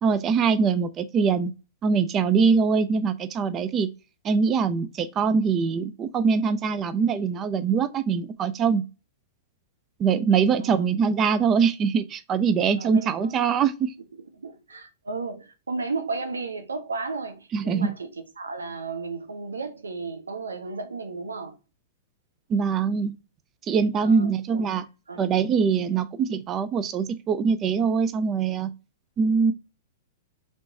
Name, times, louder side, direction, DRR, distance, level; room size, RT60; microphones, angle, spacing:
voice 1, 0.0-1.5 1.8-3.9 4.2-8.8 10.0-13.9 17.5-18.0 22.5-23.2 23.6-24.9 25.2-28.7 29.2-29.5, right 5 dB, 30° right, 0.3 m, -23 dB
voice 2, 12.8-13.4 14.4-18.1 18.4-21.6 24.0-24.7 25.1-25.3, right 4 dB, 90° right, 0.7 m, -34 dB
3.1 x 3.0 x 2.7 m
hypercardioid pair, 110°, 0 cm